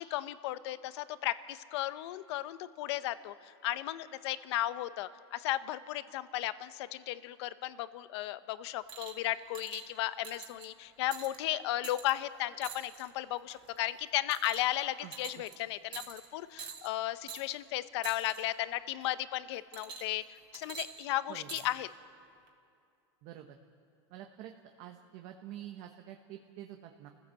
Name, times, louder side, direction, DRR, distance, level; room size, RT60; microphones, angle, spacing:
voice 1, 0.0-20.2 20.5-21.9, left 15 dB, 70° left, 14 dB, 0.8 m, -35 dB
sound 1, 8.9-9.2 9.5-9.8 10.2-10.7 11.1-11.4 11.8-12.1 12.6-13.1 13.5-13.8 14.3-14.8 15.1-15.5 15.9-16.3 16.6-16.9 17.3-17.4 18.0-18.4 19.7-20.2 20.5-21.6 22.5-22.6, right 7 dB, 30° right, 2.4 m, -45 dB
voice 2, 23.2-23.6 24.1-24.5 24.8-27.1, right 12 dB, 50° right, 4 dB, 1.2 m, -47 dB
28.0 x 15.0 x 7.6 m, 2.4 s
supercardioid pair, 135°, 15 cm